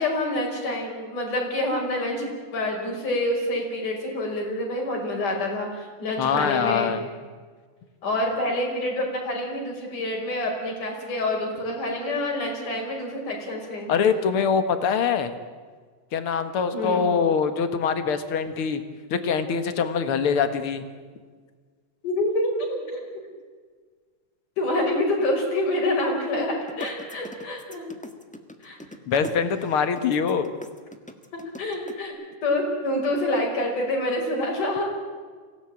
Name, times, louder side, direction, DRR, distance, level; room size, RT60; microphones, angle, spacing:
voice 1, 0.0-6.9 8.0-13.9 16.7-17.1 22.0-23.0 24.6-27.9 28.6-28.8 31.6-32.1 32.4-34.9, left 1 dB, 75° left, 0 dB, 6.7 m, -27 dB
voice 2, 6.2-7.1 13.9-15.3 16.1-18.8 19.1-20.9 29.1-30.5, left 6 dB, 50° left, 10 dB, 2.0 m, -23 dB
sound 1, 26.7-31.9, equal, 10° left, 0.3 m, -40 dB
24.5 x 17.5 x 8.9 m, 1.5 s
omnidirectional pair, 3.6 m